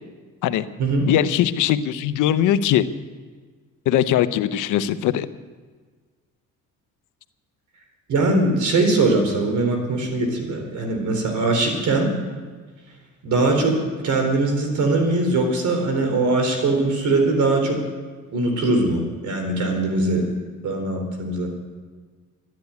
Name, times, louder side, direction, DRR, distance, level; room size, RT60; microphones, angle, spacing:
voice 1, 1.1-2.8 3.9-5.3, left 11 dB, 90° left, 12 dB, 0.8 m, -20 dB
voice 2, 8.1-12.1 13.2-17.8 18.3-20.3 20.6-21.5, right 2 dB, 75° right, 4 dB, 4.1 m, -21 dB
13.0 x 10.5 x 9.5 m, 1.5 s
cardioid pair, 90°, 30 cm